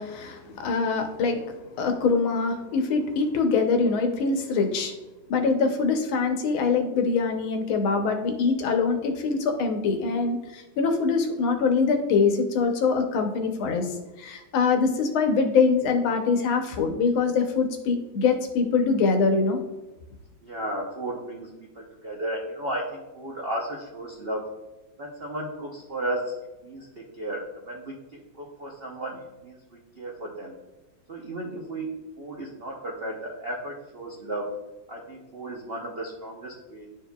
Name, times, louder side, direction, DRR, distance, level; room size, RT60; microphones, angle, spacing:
voice 1, 0.0-5.0 5.3-19.6, left 4 dB, 85° left, 5 dB, 1.6 m, -24 dB
voice 2, 20.4-21.5 21.7-24.5 25.0-26.3 26.6-30.5 31.1-34.5 34.9-36.9, right 1 dB, 65° right, -2 dB, 0.5 m, -34 dB
11.0 x 4.6 x 2.3 m, 1.1 s
omnidirectional pair, 2.2 m